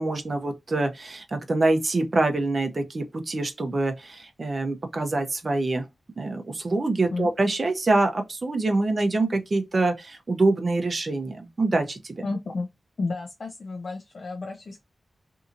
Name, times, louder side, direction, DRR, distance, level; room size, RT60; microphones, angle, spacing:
voice 1, 0.0-5.9 6.2-12.3, right 2 dB, 45° right, 0.7 m, -25 dB
voice 2, 12.2-12.7 13.0-14.8, left 3 dB, 55° left, 0.4 m, -31 dB
2.7 x 2.7 x 2.4 m
wide cardioid pair, 110°, 0 cm